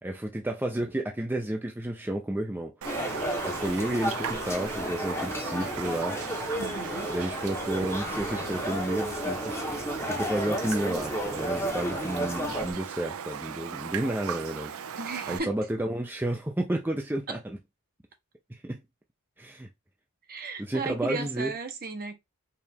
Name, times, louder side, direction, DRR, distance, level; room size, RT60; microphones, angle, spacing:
voice 1, 0.0-2.9 3.4-6.2 7.1-14.8 15.3-17.6 18.5-18.8 19.4-19.7 20.6-21.5, right 1 dB, 10° right, 0.4 m, -31 dB
sound 1, 2.8-12.7, equal, 10° left, 0.8 m, -33 dB
Raindrop, 2.8-15.4, right 7 dB, 70° right, 0.4 m, -37 dB
voice 2, 6.6-7.1 15.0-15.5 17.3-17.4 20.3-22.2, right 3 dB, 45° right, 0.9 m, -35 dB
4.5 x 2.4 x 3.5 m
head